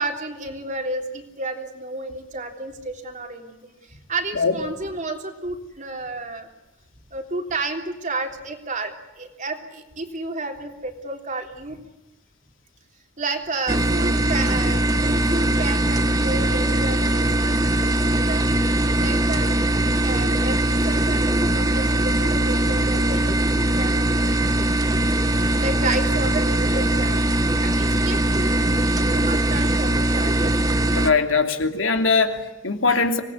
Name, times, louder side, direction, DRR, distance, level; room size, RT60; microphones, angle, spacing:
voice 1, 0.0-6.5 7.1-11.8 13.2-17.5 18.1-18.7 19.0-19.6 20.0-23.4 23.7-24.4 24.7-27.3 27.6-30.6, right 2 dB, 40° right, 4 dB, 3.3 m, -31 dB
sound 1, 13.7-31.1, right 1 dB, 20° right, 1.4 m, -21 dB
voice 2, 30.9-33.2, left 4 dB, 85° left, 5 dB, 2.9 m, -21 dB
25.5 x 19.0 x 9.6 m, 0.98 s
head